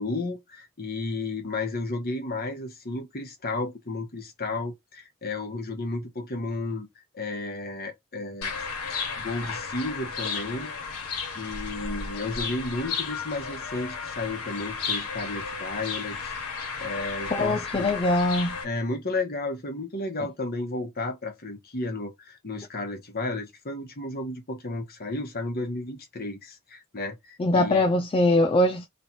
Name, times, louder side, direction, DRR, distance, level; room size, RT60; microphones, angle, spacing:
voice 1, 0.0-6.9 7.1-8.5 9.2-10.7 11.3-17.9 18.6-27.9, left 2 dB, 45° left, 1.2 m, -33 dB
sound 1, 8.4-18.6, left 5 dB, 80° left, 1.5 m, -33 dB
voice 2, 17.3-18.6 27.4-28.9, left 1 dB, 25° left, 0.4 m, -22 dB
3.2 x 3.0 x 4.1 m
head